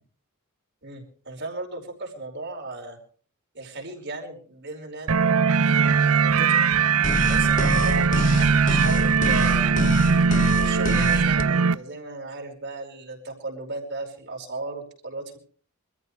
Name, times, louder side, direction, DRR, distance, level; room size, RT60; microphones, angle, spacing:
voice 1, 0.8-3.0 3.5-6.6 7.3-9.8 10.6-15.4, right 3 dB, 50° right, 2 dB, 5.1 m, -36 dB
sound 1, 5.1-11.7, right 5 dB, 80° right, 0.7 m, -20 dB
sound 2, 7.0-11.4, left 1 dB, 35° left, 0.9 m, -27 dB
26.0 x 15.0 x 3.4 m, 0.44 s
head